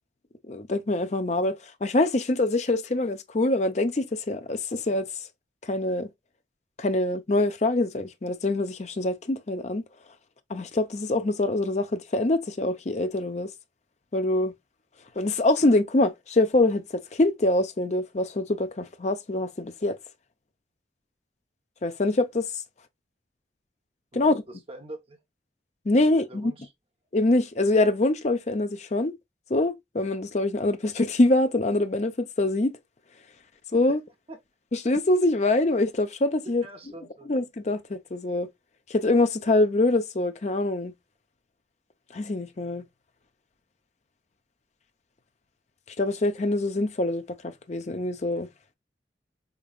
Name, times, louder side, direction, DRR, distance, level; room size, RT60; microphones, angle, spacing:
voice 1, 0.5-1.6 1.8-5.1 5.6-6.1 6.8-9.8 10.5-13.5 14.1-14.5 15.2-20.0 21.8-22.5 24.1-24.3 25.9-26.5 27.1-29.1 29.5-32.7 33.7-34.0 34.7-36.6 37.3-38.5 38.9-40.9 42.1-42.8 46.0-48.5, left 2 dB, 40° left, 0.6 m, -24 dB
voice 2, 24.1-25.2 26.1-26.7 34.3-34.4 36.6-37.4, right 1 dB, 30° right, 0.8 m, -44 dB
5.2 x 3.0 x 2.3 m
head